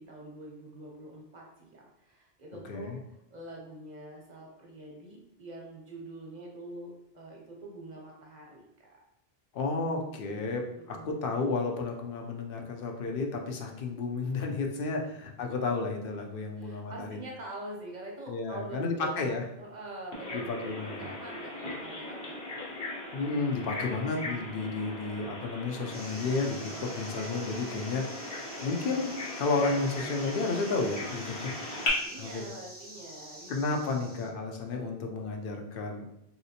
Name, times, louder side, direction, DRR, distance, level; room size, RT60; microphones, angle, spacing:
voice 1, 0.0-9.0 10.8-11.1 16.6-19.2 19.6-22.7 23.1-23.2 31.7-33.5, right 1 dB, 50° right, -1 dB, 0.8 m, -45 dB
voice 2, 9.5-17.2 18.3-19.4 20.3-21.1 23.1-28.2 28.6-31.8 32.2-32.5 33.5-36.0, left 3 dB, 65° left, 2 dB, 0.7 m, -32 dB
Bird vocalization bird call bird song, 20.1-31.9, left 2 dB, 90° left, 1.3 m, -39 dB
sound 1, 25.9-34.3, right 1 dB, 10° right, 0.6 m, -47 dB
3.2 x 2.8 x 2.7 m, 0.80 s
omnidirectional pair, 1.0 m